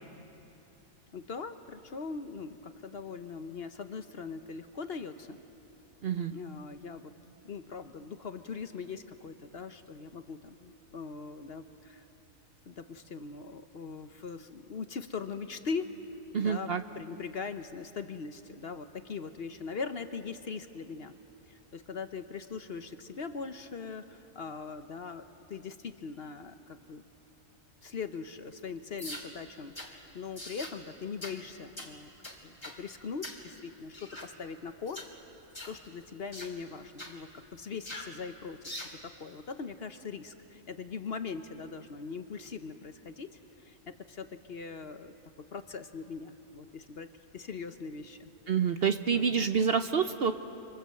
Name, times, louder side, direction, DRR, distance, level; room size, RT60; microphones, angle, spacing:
voice 1, 1.1-5.4 6.3-7.1 7.4-12.0 12.7-16.0 16.4-21.1 21.5-27.0 27.8-32.1 32.4-35.0 35.7-43.3 43.6-48.3 49.1-49.7, left 5 dB, 50° left, 9 dB, 1.0 m, -41 dB
voice 2, 6.0-6.3 16.3-16.8 48.5-50.3, right 6 dB, 55° right, 9 dB, 0.8 m, -27 dB
sound 1, 29.0-29.3 29.7-29.9 30.4-30.8 31.2-31.4 31.8-31.9 32.2-32.8 33.2-33.4 33.9-34.3 34.9-35.1 35.5-35.8 36.3-36.5 37.0-37.2 37.8-38.1 38.6-39.0, left 1 dB, 20° left, 2.4 m, -42 dB
26.0 x 26.0 x 7.7 m, 2.9 s
omnidirectional pair, 1.5 m